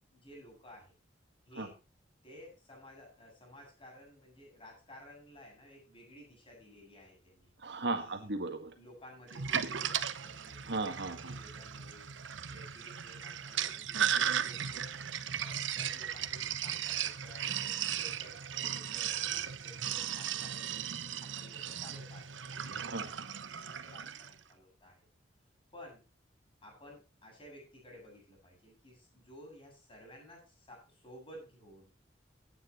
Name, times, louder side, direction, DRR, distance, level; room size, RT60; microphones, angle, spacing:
voice 1, 0.1-0.9 1.5-1.8 2.2-7.5 7.9-8.3 8.7-12.1 12.5-14.9 15.3-21.0 21.2-25.1 25.7-26.0 26.6-31.9, equal, 30° left, 0 dB, 7.9 m, -55 dB
voice 2, 7.6-8.7 10.7-11.3 22.9-23.1, right 3 dB, 65° right, 6 dB, 1.8 m, -36 dB
Sink (filling or washing), 9.3-24.3, right 9 dB, 80° right, 0.9 m, -36 dB
17.5 x 9.6 x 3.1 m, 0.30 s
head